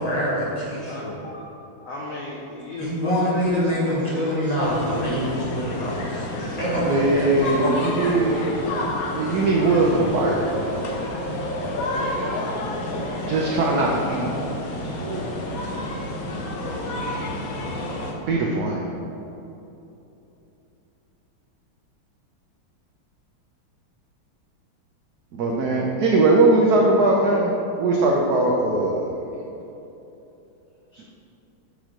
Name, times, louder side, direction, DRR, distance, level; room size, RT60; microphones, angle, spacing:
voice 1, 0.0-1.2 2.8-7.7, equal, 25° left, -8 dB, 1.0 m, -25 dB
voice 2, 0.9-1.4 1.8-4.8 30.9-31.1, left 2 dB, 85° left, -4 dB, 0.7 m, -34 dB
sound 1, 4.6-18.1, left 1 dB, 60° left, 1.0 m, -29 dB
voice 3, 6.8-8.4 9.1-10.7 13.3-14.3 15.0-15.3 18.3-18.9 25.3-29.3, right 2 dB, 80° right, -1 dB, 0.8 m, -20 dB
7.1 x 3.1 x 5.0 m, 2.9 s
omnidirectional pair, 2.3 m